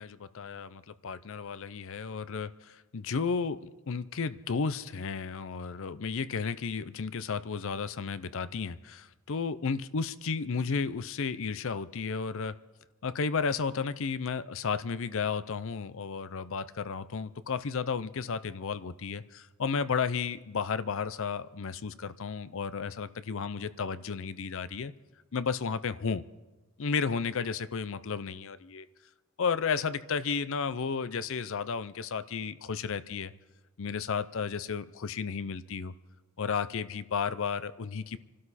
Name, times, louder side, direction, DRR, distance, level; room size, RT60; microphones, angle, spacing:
voice 1, 0.0-12.5 13.0-24.9 25.3-26.2 26.8-28.9 29.4-33.3 33.8-35.9 36.4-38.2, left 5 dB, 65° left, 14 dB, 0.6 m, -33 dB
26.5 x 12.5 x 4.2 m, 1.1 s
head